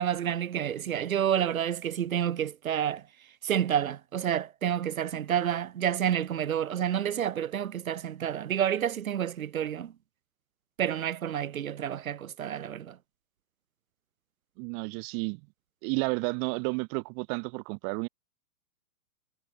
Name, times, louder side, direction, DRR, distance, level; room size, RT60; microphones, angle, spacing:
voice 1, 0.0-3.0 3.4-9.9 10.8-13.0, right 9 dB, 85° right, 2.1 m, -29 dB
voice 2, 14.6-15.4 15.8-18.1, right 40 dB or more, 10° right, 0.5 m, -31 dB
hypercardioid pair, 170°, 41 cm